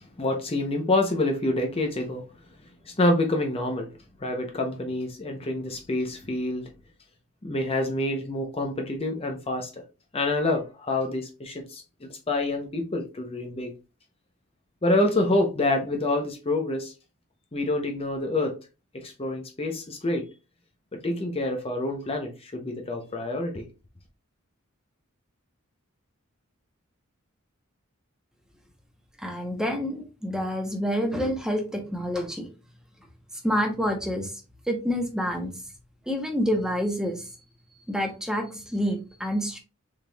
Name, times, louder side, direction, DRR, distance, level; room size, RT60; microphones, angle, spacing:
voice 1, 0.2-2.2 2.9-3.9 4.2-6.7 7.4-9.8 10.1-13.7 14.8-16.9 17.5-18.6 18.9-20.2 20.9-23.7, left 2 dB, 25° left, 0.7 m, -27 dB
voice 2, 29.2-32.5 33.4-34.3 34.7-35.5 36.1-37.3 37.9-39.6, equal, 5° right, 0.8 m, -28 dB
6.3 x 3.6 x 2.3 m
head